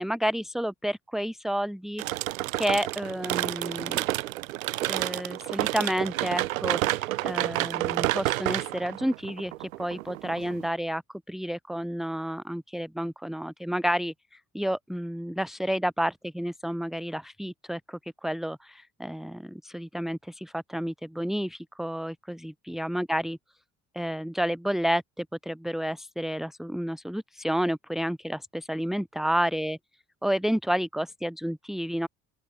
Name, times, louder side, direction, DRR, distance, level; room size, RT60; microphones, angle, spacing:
voice 1, 0.0-2.2 2.6-4.0 4.9-11.0 11.3-23.4 23.9-29.8 30.2-32.1, equal, ahead, 1.8 m, -30 dB
sound 1, 2.0-10.7, right 17 dB, 70° right, 2.7 m, -30 dB
open air
figure-of-eight pair, 55°, 42 cm